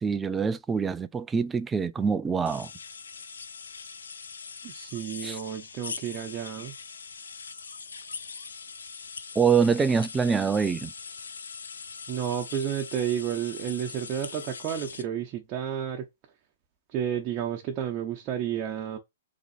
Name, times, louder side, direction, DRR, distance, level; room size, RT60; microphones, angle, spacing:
voice 1, 0.0-2.7 5.2-5.4 9.4-10.9, right 6 dB, 15° right, 0.4 m, -25 dB
sound 1, 2.5-15.0, left 5 dB, 85° left, 0.7 m, -41 dB
voice 2, 4.6-6.8 12.1-16.0 16.9-19.0, right 9 dB, 35° right, 0.8 m, -31 dB
4.0 x 3.0 x 4.2 m
hypercardioid pair, 135°, 0 cm